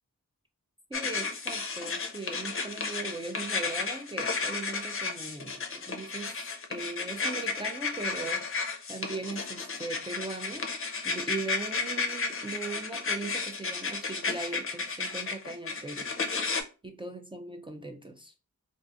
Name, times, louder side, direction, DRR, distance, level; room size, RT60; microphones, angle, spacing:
sound 1, 0.9-16.6, left 4 dB, 45° left, 0.5 m, -33 dB
voice 1, 0.9-16.1 16.8-18.3, right 3 dB, 15° right, 0.3 m, -39 dB
3.7 x 2.4 x 2.5 m
wide cardioid pair, 95°, 31 cm